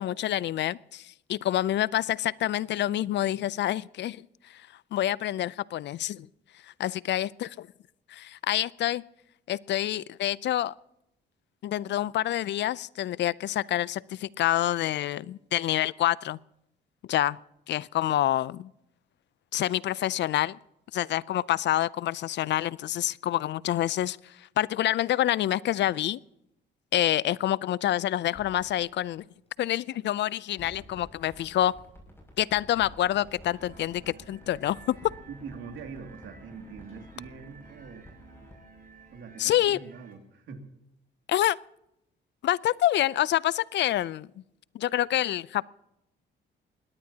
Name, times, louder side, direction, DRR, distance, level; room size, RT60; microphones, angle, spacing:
voice 1, 0.0-4.2 4.5-4.6 4.9-6.3 6.8-7.7 8.1-9.0 9.5-10.7 11.6-16.4 17.1-17.4 17.7-18.7 19.5-20.6 20.9-26.2 26.9-29.2 29.6-31.7 32.4-35.1 39.4-39.8 41.3-41.6 42.4-44.3 44.7-45.7, left 13 dB, 65° left, 22 dB, 0.4 m, -27 dB
sound 1, 28.3-29.5 29.8-31.7 32.1-33.9 34.3-36.2 36.5-37.1, left 2 dB, 30° left, 7.0 m, -55 dB
sound 2, 30.6-39.2, left 1 dB, 10° left, 6.5 m, -52 dB
sound 3, 33.5-40.1, right 4 dB, 45° right, 6.5 m, -53 dB
voice 2, 35.3-38.1 39.1-40.7, right 5 dB, 75° right, 5 dB, 2.4 m, -43 dB
21.5 x 18.0 x 2.9 m, 0.84 s
cardioid pair, 90°, 20 cm